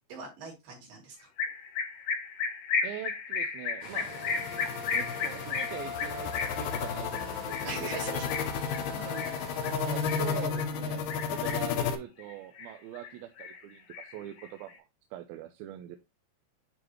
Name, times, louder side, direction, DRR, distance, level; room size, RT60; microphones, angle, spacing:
voice 1, 0.1-1.3 7.6-8.3 8.5-9.3, right 4 dB, 65° right, 4.9 m, -41 dB
sound 1, 1.4-10.7 11.1-11.8 12.2-13.1 13.4-14.7, left 5 dB, 90° left, 4.0 m, -34 dB
voice 2, 2.8-4.1 4.9-8.2 9.6-14.7 15.1-16.0, right 13 dB, 80° right, 2.4 m, -42 dB
sound 2, 3.8-10.5, right 3 dB, 45° right, 2.1 m, -45 dB
sound 3, 4.1-12.0, left 7 dB, 75° left, 2.4 m, -33 dB
9.8 x 4.0 x 3.0 m
omnidirectional pair, 4.3 m